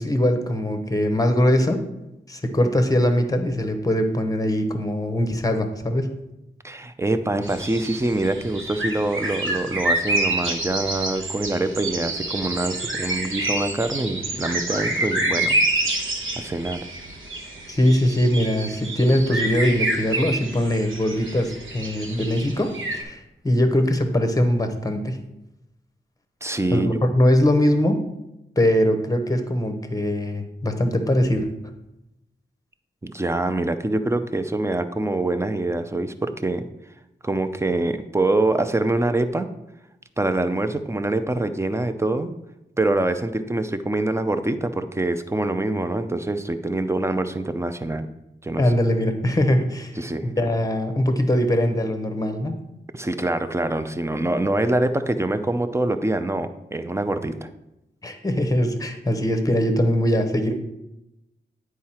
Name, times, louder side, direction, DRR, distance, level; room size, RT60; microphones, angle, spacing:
voice 1, 0.0-1.8 2.3-6.2 17.7-25.2 26.7-28.0 28.6-31.5 48.6-52.6 58.0-60.5, left 1 dB, 20° left, 6 dB, 0.9 m, -21 dB
voice 2, 6.6-15.5 16.4-16.9 26.4-26.9 33.0-36.6 37.2-39.5 40.2-42.3 42.8-48.1 48.4-48.6 50.0-50.3 52.9-57.5, right 2 dB, 15° right, 9 dB, 0.5 m, -25 dB
sound 1, 7.4-23.0, right 2 dB, 85° right, 1.2 m, -28 dB
9.4 x 4.7 x 4.3 m, 0.91 s
wide cardioid pair, 110°, 20 cm